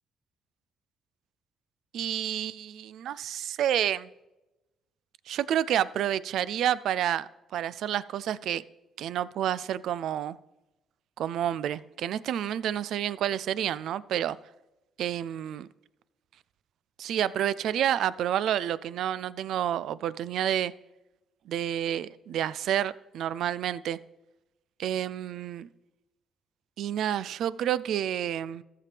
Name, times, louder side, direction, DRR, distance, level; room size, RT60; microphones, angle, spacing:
voice 1, 1.9-4.1 5.3-8.6 9.0-10.4 11.2-14.4 15.0-15.7 17.0-20.7 21.5-24.0 24.8-25.7 26.8-28.6, right 10 dB, 75° right, 0.3 m, -29 dB
14.0 x 6.8 x 3.3 m
cardioid pair, 90°, 0 cm